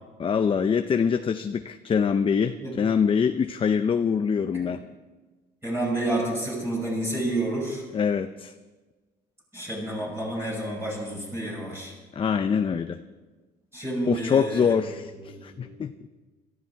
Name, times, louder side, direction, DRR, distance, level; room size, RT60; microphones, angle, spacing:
voice 1, 0.2-4.8 7.9-8.5 12.2-13.0 14.0-15.9, left 6 dB, 30° left, 8 dB, 0.6 m, -24 dB
voice 2, 5.6-7.8 9.5-11.9 13.7-15.8, right 1 dB, 15° right, -4 dB, 5.8 m, -30 dB
18.0 x 13.5 x 4.6 m, 1.3 s
cardioid pair, 110°, 17 cm